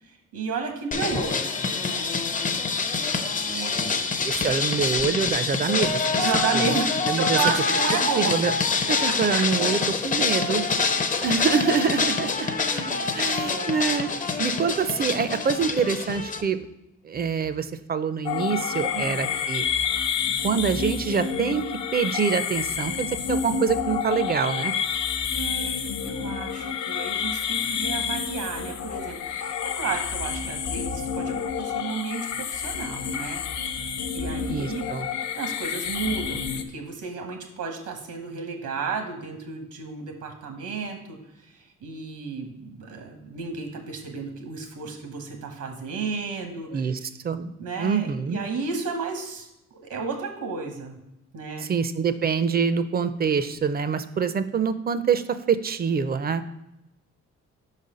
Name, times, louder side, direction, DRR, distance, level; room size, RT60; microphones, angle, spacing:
voice 1, 0.0-2.1 3.4-4.6 6.1-8.4 9.0-9.4 12.4-13.8 14.2-14.6 18.9-19.3 24.9-25.0 25.3-33.8 34.1-34.9 35.3-41.2 41.5-46.9 47.6-51.0 51.3-51.7, right 5 dB, 80° right, 4 dB, 1.2 m, -33 dB
sound 1, 0.9-16.4, left 4 dB, 25° left, 0.5 m, -26 dB
voice 2, 4.2-6.1 6.5-6.7 7.1-7.4 8.2-8.5 8.9-9.8 10.0-10.6 11.2-12.5 13.1-14.1 14.4-16.7 17.0-19.7 20.4-21.6 21.9-24.7 34.5-35.1 46.7-47.5 47.8-48.4 51.6-56.4, right 6 dB, 30° right, 12 dB, 0.4 m, -25 dB
sound 2, 18.2-36.6, left 7 dB, 75° left, 0.6 m, -29 dB
5.1 x 4.1 x 5.1 m, 0.88 s
cardioid pair, 90°, 30 cm